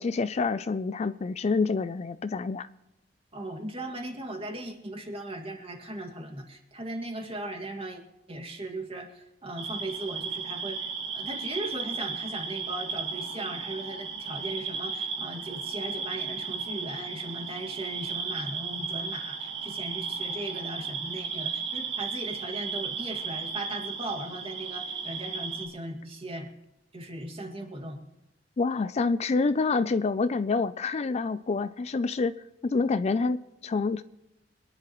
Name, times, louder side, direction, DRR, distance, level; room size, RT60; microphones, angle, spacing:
voice 1, 0.0-2.7 28.6-32.3 32.6-34.0, left 4 dB, 35° left, 0.4 m, -27 dB
voice 2, 3.3-8.0 8.3-26.5 26.9-28.0, right 1 dB, 30° right, 2.1 m, -38 dB
sound 1, 9.6-25.7, right 5 dB, 80° right, 2.2 m, -35 dB
25.5 x 11.0 x 3.1 m
head